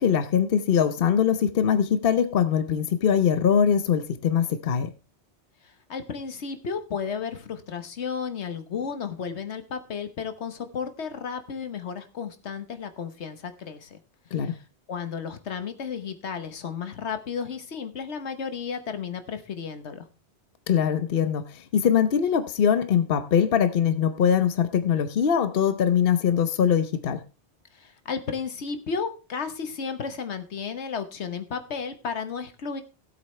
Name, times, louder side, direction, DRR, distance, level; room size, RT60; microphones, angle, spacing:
voice 1, 0.0-4.9 14.3-14.5 20.7-27.2, left 8 dB, 60° left, 1.0 m, -22 dB
voice 2, 5.6-14.0 14.9-20.1 27.7-32.8, left 6 dB, 85° left, 1.4 m, -33 dB
16.5 x 8.2 x 3.2 m
omnidirectional pair, 1.1 m